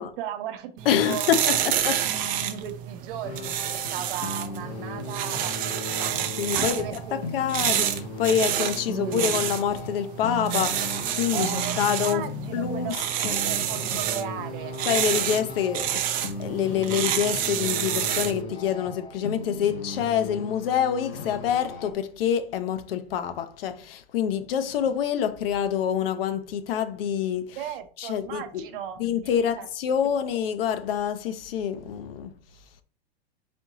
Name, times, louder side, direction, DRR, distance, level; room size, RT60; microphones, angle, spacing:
voice 1, 0.0-1.3 2.0-6.2 6.5-7.3 8.9-9.3 11.3-11.8 12.0-14.8 27.6-29.7 30.2-30.3, right 9 dB, 50° right, 0.8 m, -36 dB
sound 1, 0.8-18.4, right 10 dB, 25° right, 0.5 m, -29 dB
voice 2, 0.9-2.1 6.4-6.8 7.1-12.2 12.5-13.0 13.2-13.4 14.8-27.6 28.0-28.6 29.0-32.3, left 8 dB, 60° left, 0.7 m, -26 dB
sound 2, 3.2-21.9, left 2 dB, 85° left, 1.2 m, -37 dB
4.3 x 3.6 x 3.0 m
hypercardioid pair, 115°, 33 cm